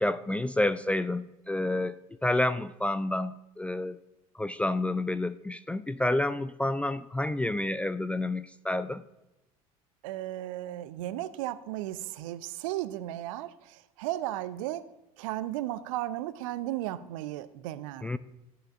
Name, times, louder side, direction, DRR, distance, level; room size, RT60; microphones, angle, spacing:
voice 1, 0.0-4.0 4.3-9.0 18.0-18.2, left 1 dB, 5° left, 14 dB, 0.3 m, -29 dB
voice 2, 10.0-14.8 15.2-18.1, right 14 dB, 60° right, 15 dB, 0.6 m, -35 dB
14.0 x 11.5 x 2.5 m, 0.95 s
figure-of-eight pair, 70°, 19 cm